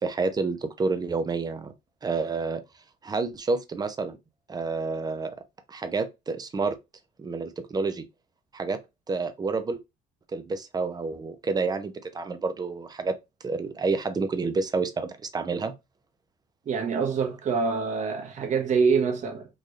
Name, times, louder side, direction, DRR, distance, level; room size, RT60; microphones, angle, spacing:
voice 1, 0.0-1.7 2.0-2.6 3.0-4.2 4.5-5.3 5.7-6.8 7.2-8.1 8.5-8.8 9.1-9.8 10.3-13.2 13.4-15.7, right 4 dB, 25° right, 0.6 m, -29 dB
voice 2, 16.6-19.5, right 5 dB, 45° right, 1.2 m, -25 dB
3.8 x 2.6 x 3.2 m
cardioid pair, 110°, 17 cm